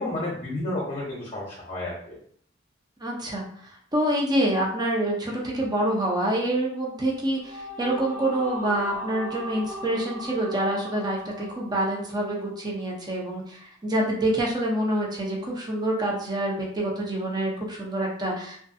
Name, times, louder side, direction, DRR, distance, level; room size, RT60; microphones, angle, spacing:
voice 1, 0.0-2.2, left 1 dB, 30° left, -5 dB, 0.7 m, -31 dB
voice 2, 3.0-18.6, right 1 dB, 20° right, -2 dB, 0.7 m, -27 dB
sound 1, 7.1-12.6, equal, 70° right, 1.0 m, -39 dB
2.9 x 2.5 x 2.6 m, 0.62 s
head